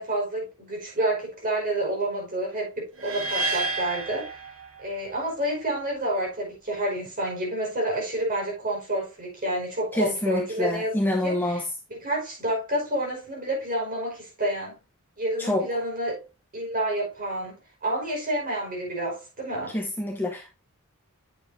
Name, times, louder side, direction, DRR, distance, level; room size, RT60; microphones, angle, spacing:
voice 1, 0.0-4.3 4.8-14.8 15.2-16.2 16.5-17.5 17.8-19.8, right 1 dB, 40° right, 5.1 m, -29 dB
sound 1, 3.0-5.1, right 2 dB, 65° right, 1.3 m, -30 dB
voice 2, 9.9-11.7 15.4-15.7 19.7-20.5, left 1 dB, 10° left, 1.0 m, -27 dB
8.9 x 7.4 x 2.7 m
head